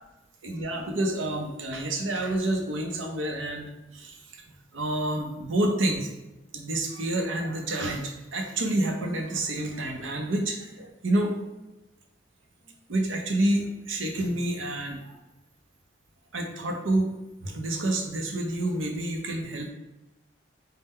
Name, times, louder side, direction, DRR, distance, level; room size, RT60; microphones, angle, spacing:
voice 1, 0.4-6.1 6.5-11.3 12.9-15.2 16.3-17.1 17.4-19.7, right 1 dB, 85° right, 3 dB, 0.7 m, -28 dB
5.4 x 2.1 x 3.6 m, 1.0 s
head